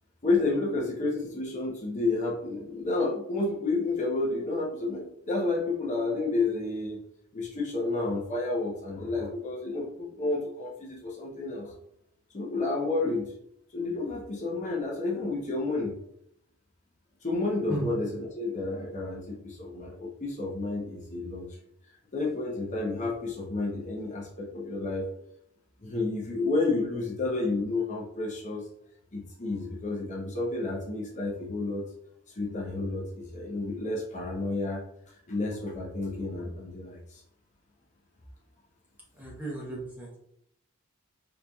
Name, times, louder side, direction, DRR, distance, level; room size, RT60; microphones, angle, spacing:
voice 1, 0.2-7.0 7.3-11.7 12.3-13.3 13.7-16.0 17.2-21.5 22.1-25.1 25.8-28.6 29.1-31.8 32.4-34.8 35.1-37.2, left 3 dB, 35° left, -3 dB, 0.6 m, -30 dB
voice 2, 39.2-40.1, right 2 dB, 10° right, -4 dB, 0.9 m, -35 dB
3.9 x 3.0 x 2.2 m, 0.74 s
head